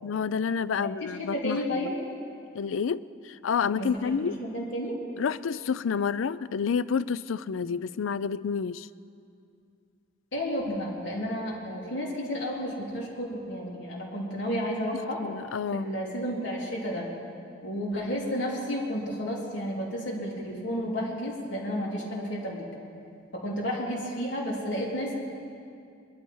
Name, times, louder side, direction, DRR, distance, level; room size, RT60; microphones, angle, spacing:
voice 1, 0.0-1.6 2.5-4.3 5.2-8.9 15.2-15.9, left 6 dB, 80° left, 17 dB, 0.4 m, -29 dB
voice 2, 0.8-1.9 3.7-4.9 10.3-15.2 15.7-17.1 17.6-22.7 23.3-25.1, equal, 65° left, -4 dB, 3.5 m, -32 dB
22.5 x 12.0 x 4.7 m, 2.5 s
head